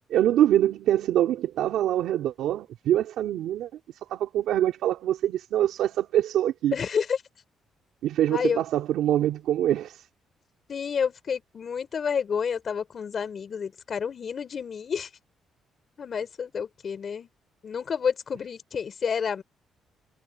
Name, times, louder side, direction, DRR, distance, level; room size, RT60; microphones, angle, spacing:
voice 1, 0.0-3.7 4.1-6.7 8.0-10.0, right 12 dB, 80° right, 3.0 m, -24 dB
voice 2, 6.7-7.2 8.3-8.6 10.7-15.1 16.0-17.3 17.6-19.4, left 6 dB, 50° left, 3.9 m, -29 dB
cardioid pair, 90°, 0 cm